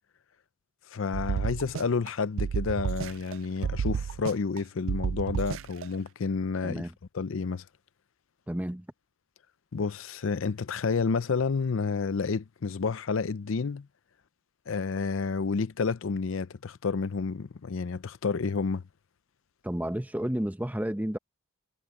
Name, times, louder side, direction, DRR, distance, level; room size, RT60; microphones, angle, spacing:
voice 1, 0.9-6.9 7.1-7.6 9.7-13.9 14.7-18.8, left 4 dB, 65° left, 0.5 m, -30 dB
sound 1, 1.1-2.1 2.4-3.3 3.6-4.6 4.9-5.8, right 7 dB, 65° right, 0.3 m, -31 dB
voice 2, 6.6-6.9 8.5-8.9 19.6-21.2, equal, 10° right, 0.8 m, -31 dB
head